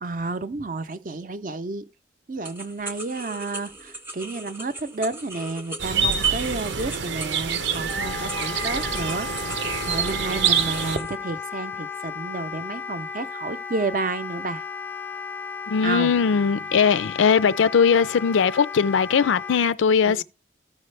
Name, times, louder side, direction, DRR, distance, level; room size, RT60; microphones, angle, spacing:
voice 1, 0.0-1.8 2.3-9.3 9.9-14.6 15.8-16.1 20.1-20.2, right 3 dB, 45° right, 0.6 m, -31 dB
sound 1, 2.4-11.1, right 2 dB, 10° right, 0.8 m, -39 dB
sound 2, 5.8-11.0, right 6 dB, 75° right, 0.8 m, -26 dB
Wind instrument woodwind instrument, 7.9-19.6, left 6 dB, 10° left, 0.3 m, -35 dB
voice 2, 15.7-20.2, left 6 dB, 85° left, 0.4 m, -20 dB
14.0 x 5.0 x 3.3 m
head